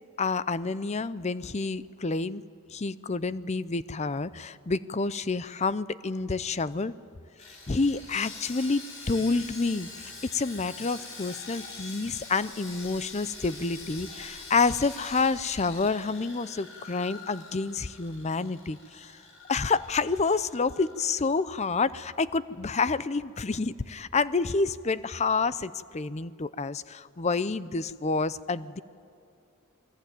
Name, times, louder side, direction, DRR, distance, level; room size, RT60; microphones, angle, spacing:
voice 1, 0.2-2.4 2.7-6.9 7.7-19.1 19.5-28.8, left 4 dB, 30° left, 16 dB, 0.6 m, -28 dB
Sawing, 7.4-21.6 21.9-22.1 22.5-22.7, left 3 dB, 65° left, 5.5 m, -45 dB
28.0 x 20.5 x 9.2 m, 2.4 s
head